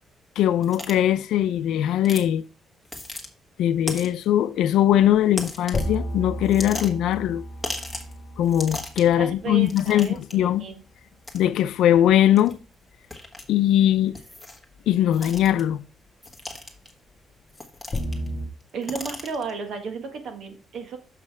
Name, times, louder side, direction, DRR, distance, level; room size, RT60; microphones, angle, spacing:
voice 1, 0.4-2.4 3.6-7.4 8.4-10.7 11.3-12.6 13.5-14.2 14.9-15.8, left 11 dB, 85° left, 0.5 m, -20 dB
sound 1, 0.6-0.9 2.0-2.3 2.8-3.3 3.9-4.2 5.3-5.9 6.4-7.1 7.6-8.1 8.4-9.1 9.6-10.3 11.2-11.4 12.4-12.5 13.1-13.4 14.1-14.6 15.1-15.6 16.2-16.9 17.5-18.3 18.6-19.5, left 2 dB, 5° left, 1.5 m, -36 dB
sound 2, 4.9-5.0 5.7-10.2 15.2-15.5 17.9-18.5, equal, 25° left, 1.1 m, -33 dB
voice 2, 9.2-10.8 18.7-21.0, right 5 dB, 65° right, 1.6 m, -33 dB
6.8 x 5.5 x 4.7 m
cardioid pair, 125°, 0 cm